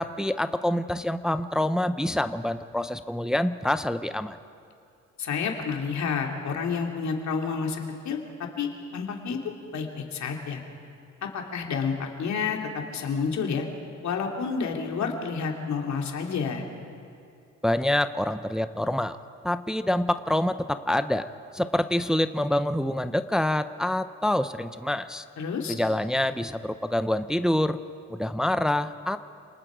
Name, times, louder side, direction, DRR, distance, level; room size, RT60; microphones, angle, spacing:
voice 1, 0.0-4.4 17.6-19.2 19.4-21.3 21.5-25.2 25.7-27.8 28.1-29.2, left 1 dB, ahead, 11 dB, 0.6 m, -26 dB
voice 2, 5.2-9.4 9.7-10.6 11.2-13.7 14.0-16.6 25.4-25.7, left 5 dB, 65° left, 2 dB, 2.7 m, -30 dB
28.0 x 20.0 x 5.0 m, 2.5 s
cardioid pair, 90°, 30 cm